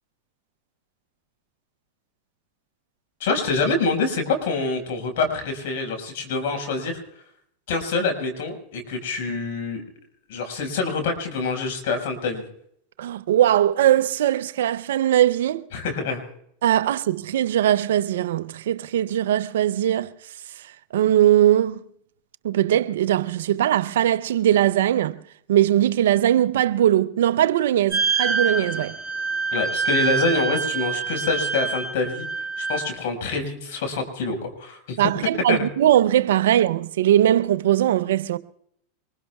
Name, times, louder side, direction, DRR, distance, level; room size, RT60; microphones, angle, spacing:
voice 1, 3.2-7.0 7.7-9.8 10.3-12.4 15.7-16.2 29.5-32.3 32.6-35.0 35.5-35.6, left 4 dB, 70° left, 5.4 m, -26 dB
voice 2, 13.0-15.7 16.6-20.1 20.6-21.8 22.4-25.2 25.5-29.0 35.0-38.4, right 11 dB, 80° right, 0.6 m, -20 dB
sound 1, 27.9-32.9, right 5 dB, ahead, 3.4 m, -26 dB
24.5 x 22.0 x 2.4 m
hypercardioid pair, 105°, 0 cm